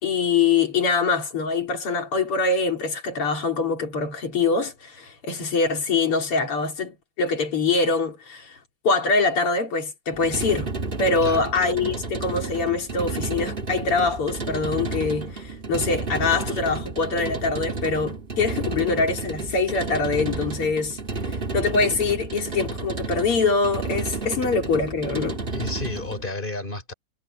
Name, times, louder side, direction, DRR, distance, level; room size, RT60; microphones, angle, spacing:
voice 1, 0.0-8.6 8.8-10.7 11.0-21.0 21.3-25.4, left 4 dB, 85° left, 4.3 m, -24 dB
sound 1, 10.1-26.3, right 3 dB, 25° right, 2.4 m, -31 dB
voice 2, 25.5-26.9, left 2 dB, 20° left, 3.8 m, -31 dB
omnidirectional pair, 2.4 m